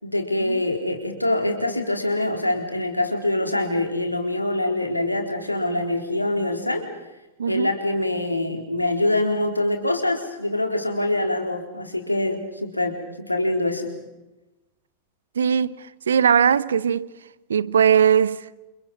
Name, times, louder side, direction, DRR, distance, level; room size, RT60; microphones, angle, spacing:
voice 1, 0.0-6.9 7.5-13.9, left 1 dB, 85° left, 4.1 m, -24 dB
voice 2, 15.4-15.7 16.1-17.1 17.5-18.4, right 8 dB, 70° right, 0.9 m, -19 dB
29.5 x 28.5 x 5.6 m
figure-of-eight pair, 90°, 0 cm